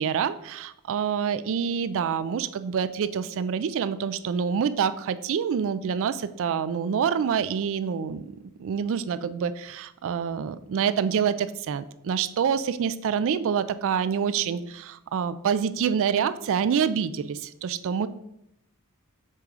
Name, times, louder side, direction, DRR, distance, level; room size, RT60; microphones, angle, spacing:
voice 1, 0.0-18.1, right 7 dB, 65° right, 14 dB, 0.3 m, -27 dB
6.7 x 3.6 x 4.8 m, 0.80 s
head